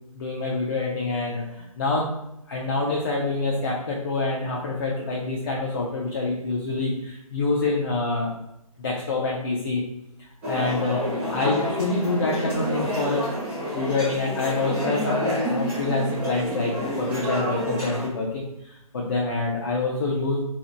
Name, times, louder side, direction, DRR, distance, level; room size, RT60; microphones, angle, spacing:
voice 1, 0.1-2.1 2.5-8.3 8.8-9.8 10.4-11.0 11.3-13.3 13.7-20.4, left 3 dB, 40° left, -3 dB, 0.4 m, -26 dB
sound 1, 10.4-18.1, equal, 10° right, 0.6 m, -28 dB
2.7 x 2.0 x 3.1 m, 0.85 s
figure-of-eight pair, 145°, 19 cm